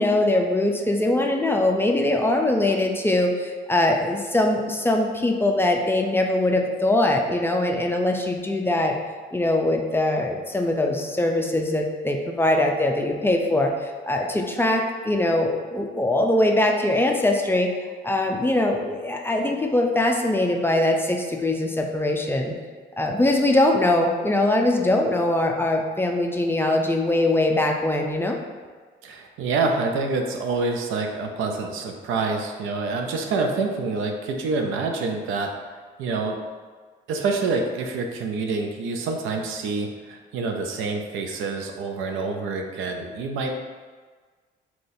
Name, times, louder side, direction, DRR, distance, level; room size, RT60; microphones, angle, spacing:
voice 1, 0.0-9.0 9.3-17.7 18.0-22.5 23.0-28.4, left 1 dB, 10° left, 2 dB, 0.4 m, -22 dB
voice 2, 29.0-35.5 36.0-36.4 37.1-43.5, right 3 dB, 90° right, 3 dB, 0.5 m, -27 dB
3.9 x 2.9 x 2.6 m, 1.5 s
cardioid pair, 90°, 20 cm